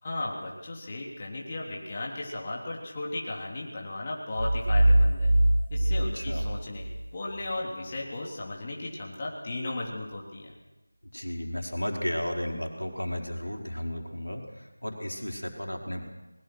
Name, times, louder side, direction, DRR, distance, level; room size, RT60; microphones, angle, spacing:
voice 1, 0.0-5.3 5.7-10.5, left 2 dB, 25° left, -3 dB, 3.4 m, -36 dB
sound 1, 4.4-7.0, right 1 dB, 55° right, 1.3 m, -23 dB
voice 2, 11.1-14.4 14.8-16.1, equal, 90° left, 1 dB, 4.7 m, -33 dB
22.5 x 21.5 x 6.3 m, 1.1 s
figure-of-eight pair, 170°, 0 cm